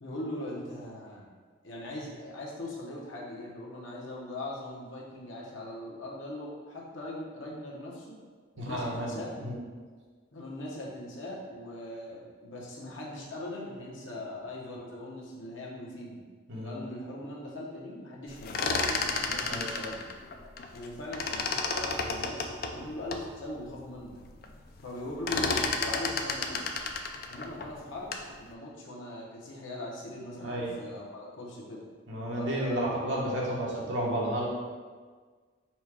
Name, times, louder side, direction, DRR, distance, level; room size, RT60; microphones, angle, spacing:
voice 1, 0.0-1.3 1.6-8.2 8.5-9.3 10.3-16.2 16.6-18.9 19.2-20.0 20.7-24.1 24.8-26.6 27.3-31.8 32.3-32.8, left 1 dB, 80° left, -3 dB, 1.0 m, -40 dB
voice 2, 8.6-9.6 16.5-16.7 19.5-19.7 30.4-30.7 32.1-34.5, right 1 dB, 70° right, -4 dB, 1.1 m, -32 dB
sound 1, 18.3-20.9 21.1-23.3 23.8-23.9 24.1-24.5 24.8-28.3, left 4 dB, 50° left, 0.3 m, -31 dB
4.3 x 2.3 x 4.7 m, 1.5 s
head